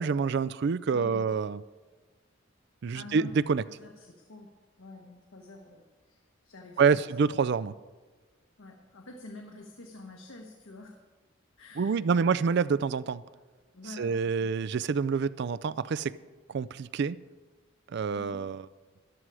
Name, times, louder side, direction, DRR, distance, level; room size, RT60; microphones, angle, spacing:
voice 1, 0.0-1.6 2.8-3.6 6.8-7.7 11.8-13.2 14.0-16.1 16.5-17.2 17.9-18.7, right 5 dB, 55° right, 0.4 m, -27 dB
voice 2, 0.9-1.3 2.9-3.3 3.6-4.5 4.8-7.0 8.6-11.0 11.6-12.3 13.7-14.5 18.2-18.4, left 2 dB, 85° left, 1.2 m, -47 dB
13.5 x 11.0 x 4.8 m
head